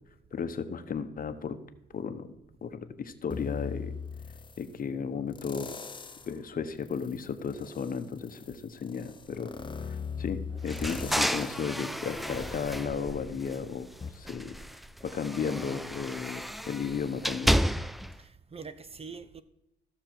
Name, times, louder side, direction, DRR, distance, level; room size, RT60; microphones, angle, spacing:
voice 1, 0.3-1.6 1.9-2.3 2.6-3.9 4.6-5.7 6.3-9.5 9.9-14.6 15.0-17.5, left 6 dB, 45° left, 0.9 m, -34 dB
sound 1, 3.3-4.7 5.3-6.4 6.9-13.6 14.0-14.1, left 6 dB, 25° left, 0.7 m, -41 dB
voice 2, 10.2-10.8 12.3-12.4 18.2-19.4, right 5 dB, 30° right, 0.7 m, -46 dB
sound 2, 10.7-13.8 14.2-18.2, equal, ahead, 0.3 m, -32 dB
15.0 x 6.6 x 4.6 m
cardioid pair, 90°, 20 cm